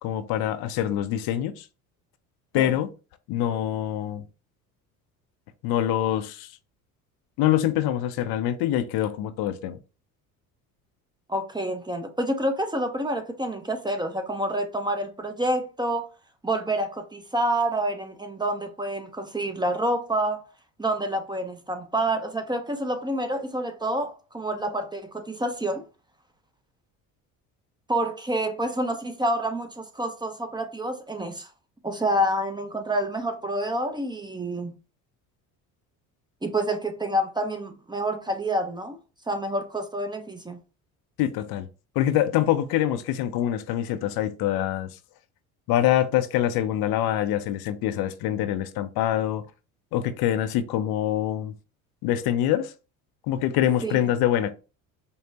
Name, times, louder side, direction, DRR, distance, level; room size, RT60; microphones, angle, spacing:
voice 1, 0.0-1.6 2.5-2.9 3.3-4.2 5.6-6.5 7.4-9.8 41.2-41.7 42.0-44.9 45.7-49.4 49.9-51.5 52.0-52.7 53.3-54.5, left 12 dB, 60° left, 0.5 m, -25 dB
voice 2, 11.3-16.1 16.4-20.4 20.8-25.8 27.9-31.5 31.8-34.7 36.4-39.0 39.3-40.6 53.8-54.1, right 1 dB, 10° right, 0.6 m, -28 dB
5.3 x 2.0 x 2.8 m
hypercardioid pair, 70°, 41 cm